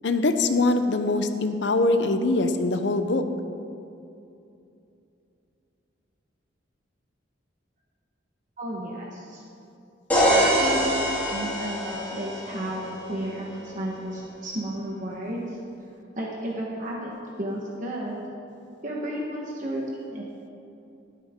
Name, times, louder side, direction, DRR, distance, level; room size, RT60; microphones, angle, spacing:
voice 1, 0.0-3.2, left 2 dB, 70° left, 8 dB, 0.7 m, -23 dB
voice 2, 8.6-9.4 10.1-15.6 16.1-17.1 17.4-18.2 18.8-19.8 20.1-20.2, right 1 dB, 45° right, -3 dB, 1.2 m, -33 dB
sound 1, 10.1-13.9, equal, 10° left, 3.0 m, -25 dB
19.0 x 8.7 x 3.7 m, 2.7 s
head